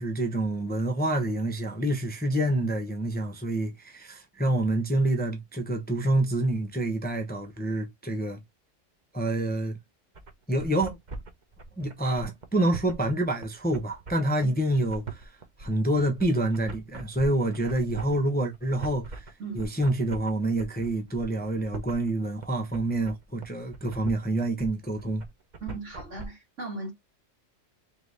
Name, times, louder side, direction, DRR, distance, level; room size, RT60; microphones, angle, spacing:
voice 1, 0.0-8.4 9.1-9.8 10.5-11.0 11.8-15.3 15.6-19.2 19.6-25.2, right 1 dB, 10° left, 0.6 m, -27 dB
sound 1, 10.1-26.3, right 4 dB, 40° right, 0.9 m, -42 dB
voice 2, 25.6-26.9, right 3 dB, 75° right, 1.9 m, -37 dB
3.9 x 3.4 x 3.2 m
omnidirectional pair, 1.3 m